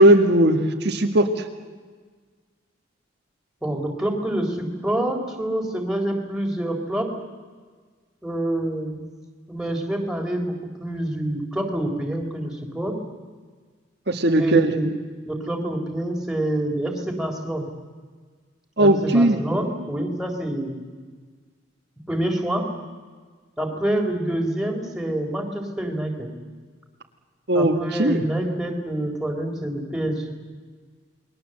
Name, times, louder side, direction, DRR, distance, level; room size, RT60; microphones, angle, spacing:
voice 1, 0.0-1.4 14.1-14.7 18.8-19.4 27.5-28.2, right 1 dB, 55° right, 4 dB, 1.7 m, -18 dB
voice 2, 3.6-7.1 8.2-9.0 9.5-10.5 10.8-13.0 14.4-14.9 15.3-17.7 18.8-20.8 22.1-22.7 23.6-26.3 27.5-30.2, right 1 dB, 5° right, 0 dB, 3.7 m, -26 dB
29.0 x 21.5 x 7.8 m, 1.5 s
head